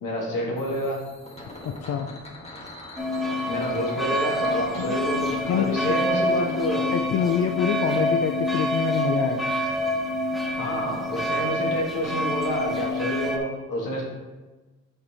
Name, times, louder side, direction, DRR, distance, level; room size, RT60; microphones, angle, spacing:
voice 1, 0.0-1.0 3.5-6.8 10.5-14.0, left 1 dB, 80° left, -2 dB, 2.0 m, -28 dB
sound 1, 0.6-7.5, left 1 dB, 20° left, 1.7 m, -42 dB
voice 2, 1.6-2.1 4.9-5.0 5.5-6.0 6.4-6.5 6.9-9.5, left 8 dB, 50° left, 6 dB, 0.5 m, -26 dB
sound 2, 3.0-13.4, equal, ahead, 1.0 m, -27 dB
6.0 x 4.6 x 4.9 m, 1.2 s
cardioid pair, 80°, 31 cm